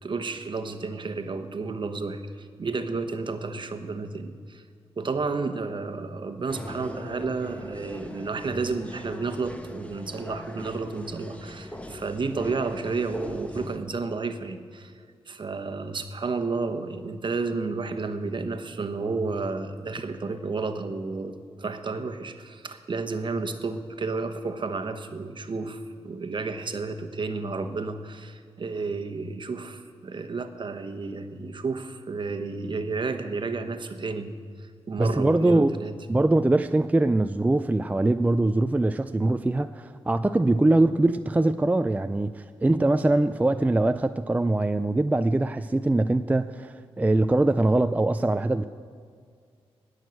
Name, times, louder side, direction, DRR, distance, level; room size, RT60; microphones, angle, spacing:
voice 1, 0.0-4.6 5.0-14.9 15.3-35.9, right 4 dB, 50° right, 8 dB, 1.1 m, -31 dB
sound 1, 6.5-13.8, left 1 dB, 10° left, 1.3 m, -40 dB
voice 2, 35.0-35.8 36.1-48.6, right 2 dB, 15° right, 10 dB, 0.4 m, -22 dB
19.0 x 6.5 x 7.7 m, 2.1 s
cardioid pair, 70°, 11 cm